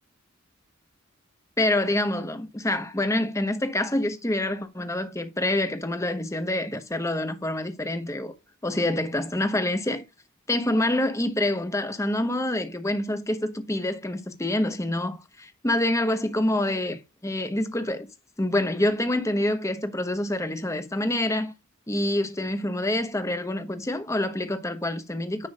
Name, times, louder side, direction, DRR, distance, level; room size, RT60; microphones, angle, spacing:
voice 1, 1.6-8.3 8.6-10.0 10.5-18.1 18.4-21.5 21.9-25.5, left 1 dB, 15° left, 1.0 m, -26 dB
10.0 x 6.0 x 2.4 m
head